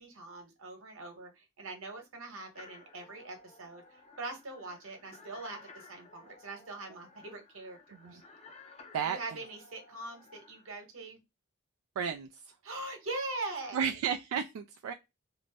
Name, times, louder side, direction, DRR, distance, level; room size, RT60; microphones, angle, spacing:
voice 1, 0.0-7.8 8.0-8.2 9.0-11.2 12.6-13.8, right 2 dB, 65° right, 1.0 m, -42 dB
sound 1, 2.5-10.8, left 4 dB, 30° left, 0.5 m, -56 dB
voice 2, 12.0-12.3 13.7-14.9, right 7 dB, 80° right, 0.3 m, -32 dB
2.5 x 2.0 x 3.3 m
head